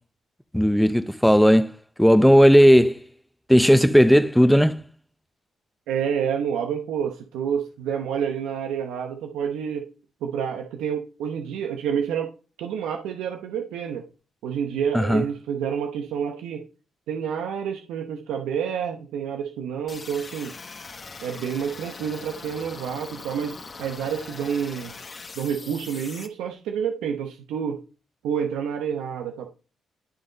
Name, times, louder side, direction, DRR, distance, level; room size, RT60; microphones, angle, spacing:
voice 1, 0.5-1.7 2.0-3.0 3.5-4.8 14.9-15.2, equal, ahead, 0.5 m, -16 dB
voice 2, 5.9-9.9 10.2-12.3 12.6-14.1 14.4-16.6 17.1-20.5 21.2-24.9 25.4-27.8 28.2-29.5, right 8 dB, 90° right, 0.8 m, -28 dB
sound 1, 19.9-26.3, left 4 dB, 35° left, 1.3 m, -41 dB
11.5 x 3.9 x 3.9 m
cardioid pair, 90°, 0 cm